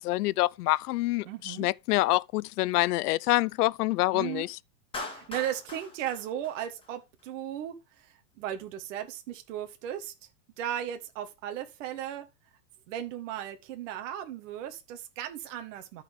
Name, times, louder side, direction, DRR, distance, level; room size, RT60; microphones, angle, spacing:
voice 1, 0.0-4.5, left 18 dB, 75° left, 0.6 m, -26 dB
voice 2, 1.2-1.7 4.1-4.5 5.1-10.1 10.6-12.3 12.9-16.0, right 11 dB, 50° right, 1.5 m, -36 dB
Clapping, 4.9-7.2, left 2 dB, 10° left, 2.0 m, -41 dB
13.5 x 4.5 x 3.5 m
supercardioid pair, 165°, 46 cm